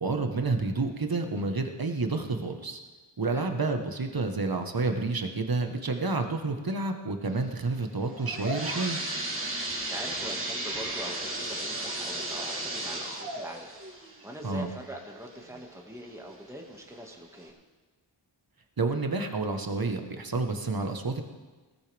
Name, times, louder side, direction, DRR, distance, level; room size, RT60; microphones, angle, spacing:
voice 1, 0.0-2.8 3.2-9.0 14.4-14.7 18.8-21.2, right 3 dB, 50° right, 5 dB, 1.5 m, -29 dB
sound 1, 8.0-15.6 16.1-16.2 16.9-17.0 17.4-17.5, right 1 dB, 30° right, 2.6 m, -35 dB
voice 2, 9.7-13.8 14.2-17.6, equal, 5° right, 0 dB, 2.0 m, -43 dB
19.5 x 13.5 x 3.6 m, 1.3 s
wide cardioid pair, 55°, 44 cm